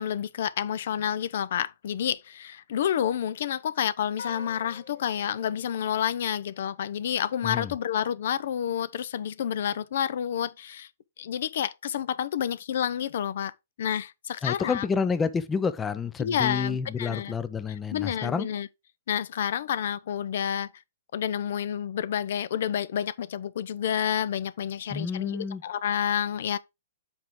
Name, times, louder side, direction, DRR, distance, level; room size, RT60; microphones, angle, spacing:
voice 1, 0.0-10.9 11.2-13.5 13.8-14.8 16.2-17.3 17.9-18.7 19.1-20.7 21.1-26.6, left 9 dB, 60° left, 0.5 m, -29 dB
sound 1, 4.2-6.7, left 4 dB, 80° left, 2.1 m, -46 dB
voice 2, 14.4-18.5 24.9-25.6, left 5 dB, 15° left, 0.5 m, -29 dB
7.3 x 4.6 x 3.7 m
hypercardioid pair, 150°, 0 cm